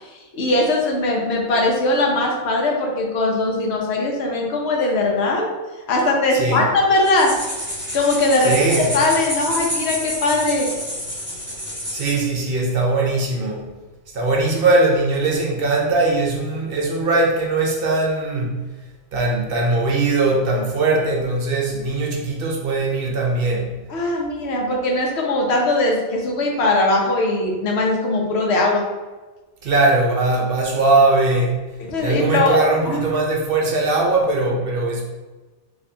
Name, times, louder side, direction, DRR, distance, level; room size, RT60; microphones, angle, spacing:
voice 1, 0.0-5.5 5.9-7.3 7.9-10.7 23.9-28.8 31.8-32.6 32.9-33.0, left 2 dB, 70° left, -1 dB, 1.0 m, -20 dB
voice 2, 6.3-6.7 8.4-9.0 11.9-13.7 14.1-18.6 19.1-23.8 29.6-31.6 32.0-35.0, right 2 dB, 60° right, 0 dB, 0.8 m, -20 dB
sound 1, 7.0-12.3, equal, 10° right, 1.3 m, -28 dB
4.2 x 2.8 x 2.7 m, 1.2 s
omnidirectional pair, 1.2 m